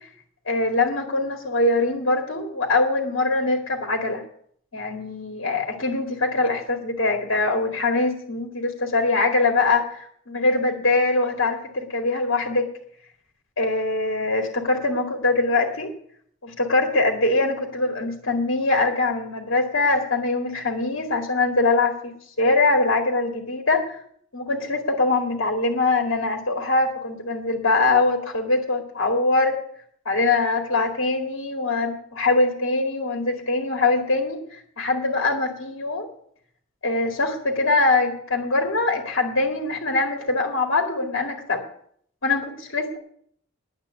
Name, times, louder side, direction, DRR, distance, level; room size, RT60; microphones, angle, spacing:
voice 1, 0.5-4.2 4.7-12.7 13.6-15.9 16.4-24.0 24.3-29.6 30.1-36.1 36.8-41.6 42.2-43.0, left 3 dB, 70° left, 2 dB, 2.3 m, -23 dB
10.5 x 8.4 x 9.7 m, 0.64 s
head